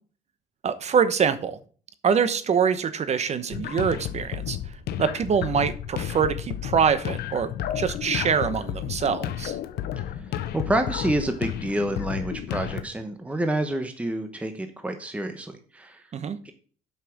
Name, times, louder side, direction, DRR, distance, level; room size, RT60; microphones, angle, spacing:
voice 1, 0.6-1.6 2.0-4.6 5.0-9.6 16.1-16.4, right 7 dB, 40° right, 13 dB, 1.0 m, -24 dB
sound 1, 3.5-12.8, left 11 dB, 70° left, 0.9 m, -32 dB
voice 2, 10.2-16.0 16.4-16.5, right 1 dB, 10° right, 7 dB, 1.0 m, -28 dB
8.2 x 5.9 x 6.0 m, 0.42 s
cardioid pair, 110°, 17 cm